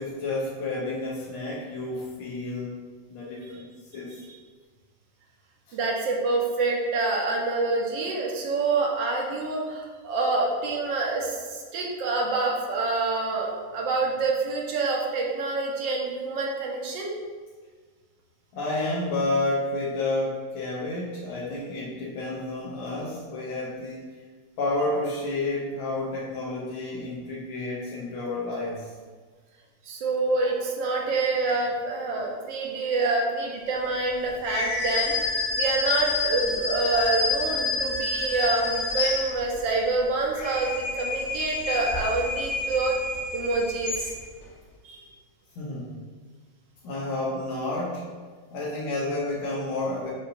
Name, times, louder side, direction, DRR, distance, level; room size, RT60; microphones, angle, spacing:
voice 1, 0.0-2.7 3.1-3.7 3.9-4.1 5.7-5.8 18.5-24.1 24.6-28.9 45.6-46.0 46.8-48.0 48.5-50.1, left 2 dB, 85° left, -7 dB, 1.6 m, -30 dB
voice 2, 5.7-17.1 29.8-35.1 35.6-43.0 43.3-44.1 44.8-45.0, right 3 dB, 70° right, -1 dB, 1.4 m, -27 dB
sound 1, 34.4-39.7 40.2-44.4, left 3 dB, 70° left, 1.6 m, -29 dB
6.8 x 2.7 x 2.6 m, 1.5 s
omnidirectional pair, 2.2 m